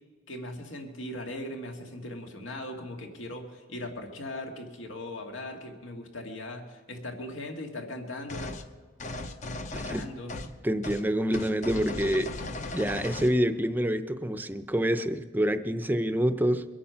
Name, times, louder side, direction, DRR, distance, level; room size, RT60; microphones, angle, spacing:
voice 1, 0.3-8.6 9.7-10.3, left 1 dB, 85° left, 3 dB, 1.9 m, -39 dB
sound 1, 8.3-8.7 9.0-10.6 10.8-11.0 11.3-13.4, left 2 dB, 40° left, 0.7 m, -37 dB
voice 2, 9.7-10.1 10.6-12.3 12.7-16.7, equal, 10° right, 10 dB, 0.6 m, -27 dB
23.0 x 8.6 x 5.8 m, 1.4 s
head